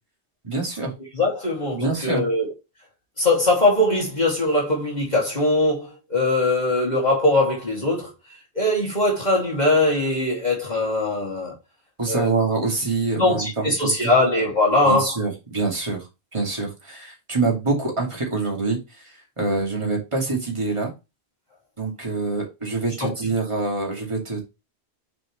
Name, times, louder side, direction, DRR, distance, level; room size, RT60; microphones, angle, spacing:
voice 1, 0.4-0.9 1.7-2.2 12.0-14.1 14.8-16.0 16.3-18.8 19.0-20.9 21.8-24.4, right 3 dB, 25° right, 2.7 m, -25 dB
voice 2, 1.1-2.5 3.2-8.1 8.5-11.5 12.1-12.3 13.1-15.2 23.0-23.1, left 2 dB, 40° left, 2.7 m, -21 dB
6.7 x 5.3 x 3.3 m
omnidirectional pair, 1.1 m